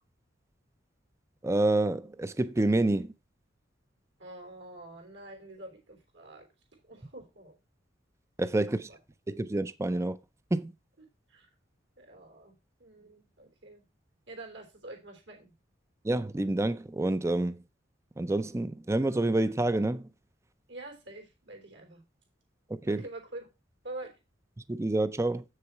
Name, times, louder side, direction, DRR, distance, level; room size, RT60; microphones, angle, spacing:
voice 1, 1.4-3.1 8.4-8.8 9.3-10.2 10.5-10.7 16.0-17.6 18.2-20.1 22.7-23.0 24.7-25.4, right 2 dB, 15° right, 0.4 m, -28 dB
voice 2, 4.2-6.5 6.8-7.6 8.6-9.0 11.0-11.5 12.0-12.5 12.8-13.8 14.3-15.5 20.7-22.0 22.8-23.5 23.8-24.1, right 2 dB, 75° right, 3.3 m, -46 dB
7.9 x 6.6 x 4.5 m
head